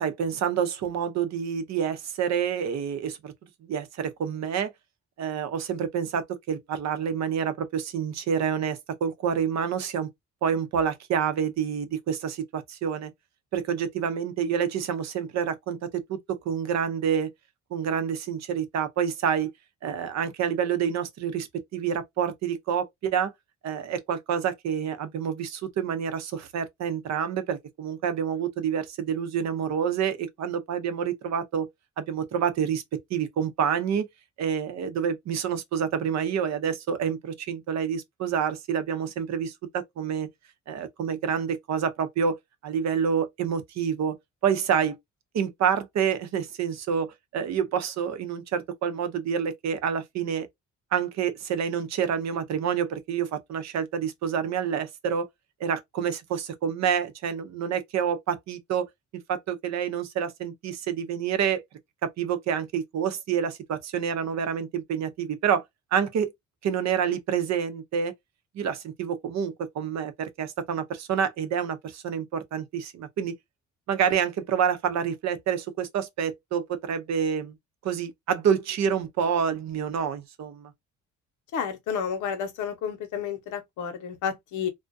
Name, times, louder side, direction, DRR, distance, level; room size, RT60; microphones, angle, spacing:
voice 1, 0.0-3.3 3.6-4.7 5.2-10.1 10.4-13.1 13.5-17.3 17.7-19.5 19.8-23.3 23.6-31.7 32.0-32.8 33.1-34.1 34.4-40.3 40.7-42.4 42.6-44.2 44.4-45.0 45.3-50.5 50.9-55.3 55.6-58.9 59.3-61.6 62.0-65.6 65.9-66.3 66.6-68.1 68.5-73.3 73.9-77.5 77.8-80.7, right 7 dB, 65° right, 0.6 m, -28 dB
voice 2, 81.5-84.7, left 7 dB, 80° left, 0.8 m, -31 dB
2.3 x 2.1 x 2.5 m
cardioid pair, 90°, 30 cm